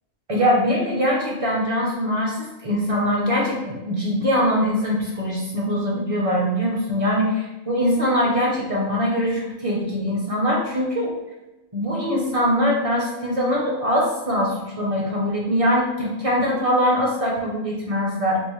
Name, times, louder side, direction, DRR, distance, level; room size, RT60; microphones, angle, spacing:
voice 1, 0.3-11.1 11.7-18.4, equal, 35° right, -3 dB, 0.5 m, -22 dB
3.5 x 2.5 x 3.0 m, 1.0 s
omnidirectional pair, 1.4 m